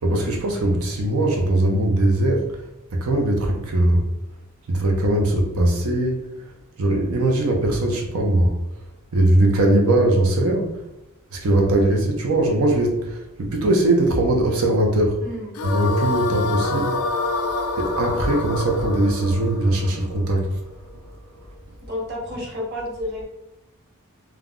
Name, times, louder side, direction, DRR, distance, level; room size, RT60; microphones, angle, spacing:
voice 1, 0.0-2.5 2.9-4.1 4.7-6.2 6.8-8.5 9.1-10.8 11.3-15.2 15.6-17.0 17.8-20.5, right 1 dB, 70° right, 1 dB, 0.6 m, -20 dB
voice 2, 15.2-15.6 21.8-23.2, left 1 dB, 50° right, -3 dB, 0.9 m, -30 dB
sound 1, 15.5-20.8, left 3 dB, 85° left, 0.3 m, -27 dB
2.4 x 2.0 x 3.5 m, 0.95 s
head